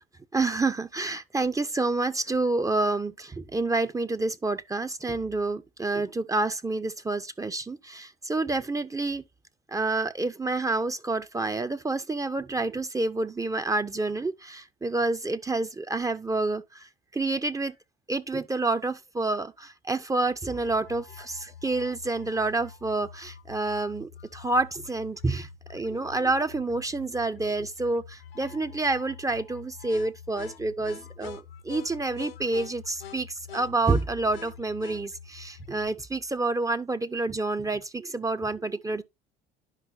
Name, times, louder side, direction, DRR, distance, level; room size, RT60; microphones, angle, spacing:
voice 1, 0.3-9.2 9.7-17.7 18.1-39.0, right 3 dB, 10° right, 0.6 m, -28 dB
sound 1, 20.5-35.9, left 8 dB, 75° left, 1.0 m, -46 dB
10.5 x 5.6 x 2.6 m
figure-of-eight pair, 60°, 29 cm